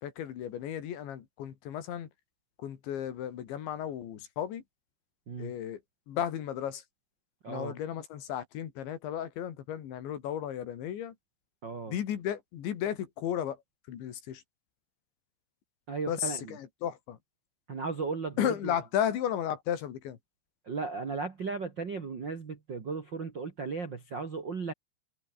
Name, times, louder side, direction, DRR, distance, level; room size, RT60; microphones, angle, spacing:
voice 1, 0.0-2.1 2.6-4.6 5.4-5.8 6.1-6.8 7.5-11.1 11.9-13.6 13.9-14.4 16.1-17.2 18.4-20.2, left 10 dB, 75° left, 4.8 m, -34 dB
voice 2, 7.4-7.8 11.6-11.9 15.9-16.6 17.7-18.8 20.6-24.7, right 4 dB, 50° right, 1.4 m, -36 dB
omnidirectional pair, 5.3 m